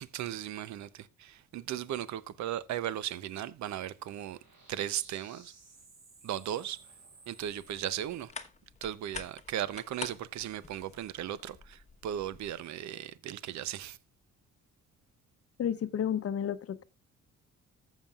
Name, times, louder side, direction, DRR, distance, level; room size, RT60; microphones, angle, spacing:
voice 1, 0.0-4.4 4.7-5.5 6.2-6.9 7.3-8.3 8.8-14.0, right 11 dB, 65° right, 0.7 m, -37 dB
sound 1, 3.6-8.0, right 3 dB, 85° right, 5.1 m, -57 dB
sound 2, 7.4-12.6, left 4 dB, 25° left, 1.0 m, -47 dB
voice 2, 15.6-16.8, left 9 dB, 50° left, 0.8 m, -31 dB
14.5 x 7.3 x 2.3 m
cardioid pair, 90°, 30 cm